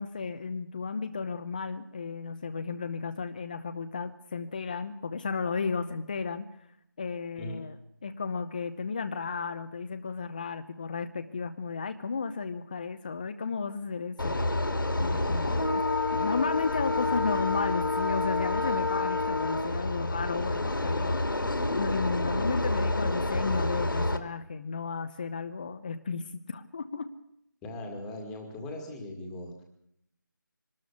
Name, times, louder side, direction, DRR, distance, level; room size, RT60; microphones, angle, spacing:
voice 1, 0.0-6.5 7.0-14.4 15.0-15.8 16.1-27.1, left 5 dB, 25° left, 8 dB, 0.8 m, -34 dB
voice 2, 7.4-7.7 27.6-29.6, left 1 dB, 5° left, 2 dB, 2.0 m, -39 dB
sound 1, 14.2-24.2, left 2 dB, 85° left, 2.4 m, -28 dB
24.0 x 13.0 x 8.5 m, 0.76 s
figure-of-eight pair, 170°, 11 cm